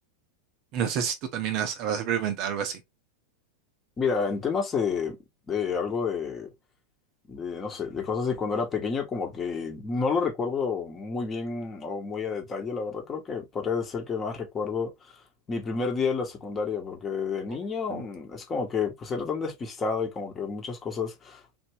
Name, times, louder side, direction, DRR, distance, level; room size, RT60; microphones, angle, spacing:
voice 1, 0.7-2.8 17.9-18.0, right 8 dB, 40° right, 0.6 m, -29 dB
voice 2, 4.0-5.2 5.5-6.5 7.3-15.2 15.5-21.6, left 5 dB, 20° left, 1.1 m, -30 dB
3.4 x 2.6 x 3.1 m
figure-of-eight pair, 90°, 0 cm